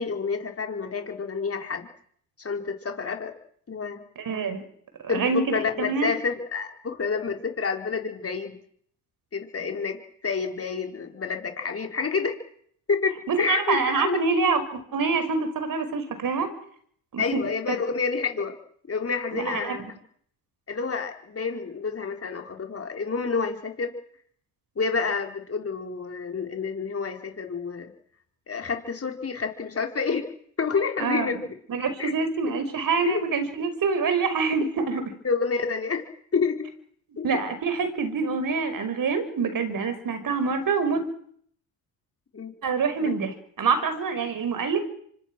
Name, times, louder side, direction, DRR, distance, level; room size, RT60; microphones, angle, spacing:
voice 1, 0.0-1.9 2.4-3.3 3.7-4.0 5.1-8.6 9.3-10.0 10.2-12.4 12.9-13.8 14.0-14.2 17.2-18.5 18.9-19.8 20.7-23.9 24.8-27.9 28.5-30.3 30.6-31.4 32.0-32.1 33.1-33.2 35.2-36.0 36.3-36.6 37.2-37.3 42.3-42.5 43.0-43.1, left 5 dB, 30° left, 4 dB, 4.7 m, -28 dB
voice 2, 4.2-4.6 5.0-6.1 13.3-16.5 17.1-17.8 19.3-19.9 31.0-31.3 31.7-35.0 37.2-41.0 42.6-44.8, right 4 dB, 45° right, 9 dB, 5.6 m, -26 dB
27.5 x 25.0 x 6.3 m, 0.64 s
supercardioid pair, 80°, 45 cm